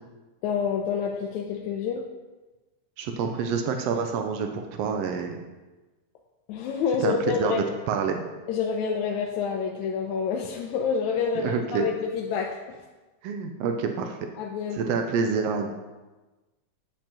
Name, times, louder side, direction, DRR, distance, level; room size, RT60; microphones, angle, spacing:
voice 1, 0.4-2.1 6.5-7.6 8.5-12.8 14.4-14.8, left 6 dB, 80° left, 0 dB, 1.9 m, -28 dB
voice 2, 3.0-5.4 7.0-7.1 7.4-8.2 11.4-11.9 13.2-14.2 14.7-15.7, right 5 dB, 85° right, 5 dB, 1.4 m, -27 dB
8.9 x 7.4 x 2.9 m, 1.2 s
omnidirectional pair, 3.4 m